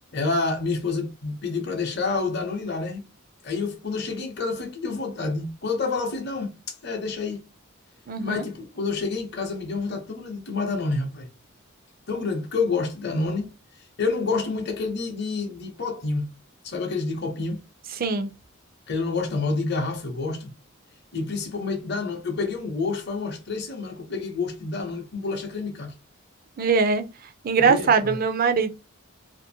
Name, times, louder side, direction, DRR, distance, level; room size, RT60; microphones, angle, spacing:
voice 1, 0.1-3.0 3.4-6.5 6.8-7.4 8.2-11.3 12.1-13.5 14.0-16.3 16.6-17.6 18.9-20.5 21.1-25.9 27.6-28.2, left 3 dB, 50° left, 0.7 m, -28 dB
voice 2, 8.1-8.4 18.0-18.3 26.6-27.0 27.4-28.7, right 5 dB, 45° right, 0.4 m, -21 dB
2.6 x 2.5 x 2.7 m
head